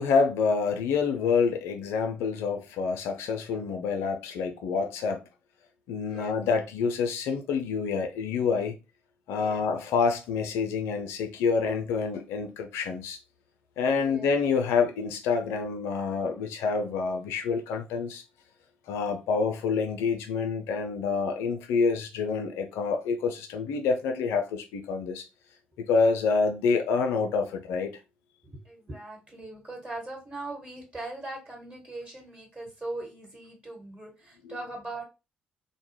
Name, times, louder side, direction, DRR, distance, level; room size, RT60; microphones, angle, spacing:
voice 1, 0.0-5.2 5.9-8.8 9.3-13.2 13.8-18.2 18.9-25.3 25.8-28.0 34.4-34.6, left 5 dB, 65° left, 0.4 m, -27 dB
voice 2, 14.0-14.3 28.4-35.0, right 2 dB, 30° right, 1.1 m, -40 dB
2.2 x 2.0 x 3.1 m
figure-of-eight pair, 45°, 5 cm